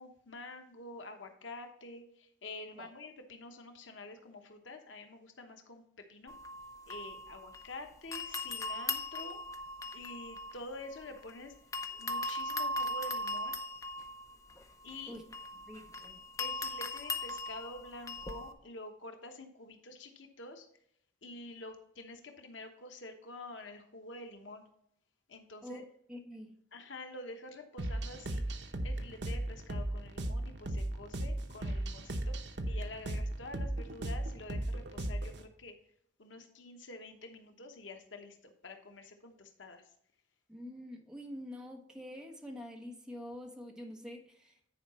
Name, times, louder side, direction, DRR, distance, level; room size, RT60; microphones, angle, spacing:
voice 1, 0.0-6.3 6.9-9.4 9.9-11.5 12.0-13.6 14.8-15.2 16.4-20.7 21.2-24.6 25.3-25.8 26.7-32.3 32.7-35.7 36.2-39.8, left 2 dB, 90° left, 5 dB, 1.1 m, -48 dB
sound 1, 6.3-7.8 8.1-11.3 11.7-18.5, left 2 dB, 15° left, 0.6 m, -39 dB
voice 2, 15.6-16.2 25.6-26.6 40.5-44.6, left 1 dB, 5° right, 2 dB, 1.3 m, -46 dB
sound 2, 27.8-35.4, right 1 dB, 65° right, 0.9 m, -36 dB
10.0 x 4.9 x 4.3 m, 0.69 s
head